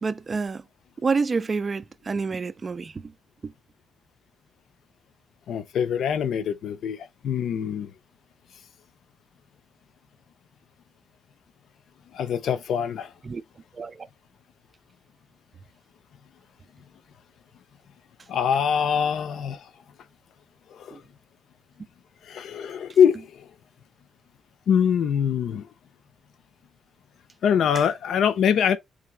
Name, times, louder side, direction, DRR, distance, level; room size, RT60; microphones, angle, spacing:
voice 1, 0.0-0.7 1.0-3.1 3.4-3.5 13.2-13.4 13.7-14.1 20.9-21.0 27.7-27.9, right 4 dB, 30° right, 0.3 m, -28 dB
voice 2, 5.5-7.9 12.1-13.1 18.3-19.6 20.8-21.0 22.3-23.3 24.7-25.7 27.4-28.8, left 8 dB, 75° left, 0.5 m, -23 dB
3.8 x 3.3 x 3.2 m
cardioid pair, 150°, 0 cm